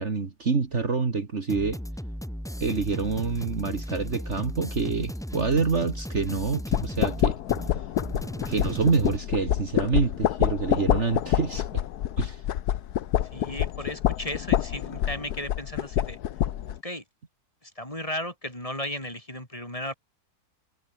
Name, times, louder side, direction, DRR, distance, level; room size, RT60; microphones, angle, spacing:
voice 1, 0.0-1.8 2.6-7.4 8.5-11.8 12.2-12.4, right 4 dB, 50° right, 2.2 m, -27 dB
sound 1, 1.5-9.2, equal, ahead, 2.3 m, -36 dB
sound 2, 6.7-16.8, left 11 dB, 85° left, 1.4 m, -27 dB
voice 2, 13.3-16.2 16.8-17.0 17.6-19.9, left 1 dB, 20° left, 6.1 m, -35 dB
omnidirectional pair, 1.6 m